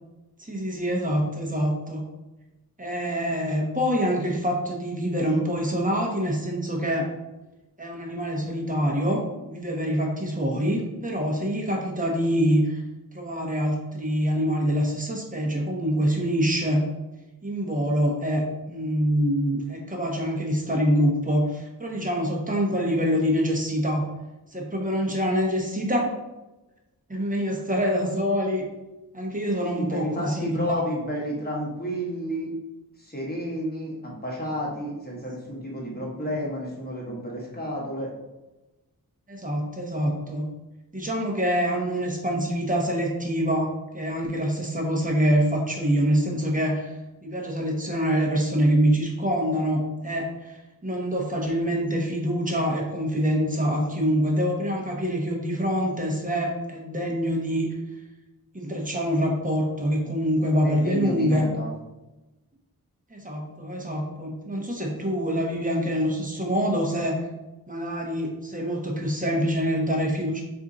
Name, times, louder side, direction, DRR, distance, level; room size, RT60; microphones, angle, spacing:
voice 1, 0.4-2.1 2.8-7.1 7.8-12.8 13.1-16.8 17.4-24.1 24.5-26.1 27.1-28.6 29.1-30.8 36.2-36.3 39.3-40.5 40.9-46.9 47.2-57.7 58.5-61.5 63.1-67.3 67.7-70.4, equal, 20° right, -1 dB, 0.9 m, -25 dB
voice 2, 29.7-32.5 33.0-38.1 60.6-61.7, equal, 25° left, -3 dB, 1.1 m, -31 dB
4.3 x 2.7 x 3.8 m, 1.0 s
wide cardioid pair, 75°, 36 cm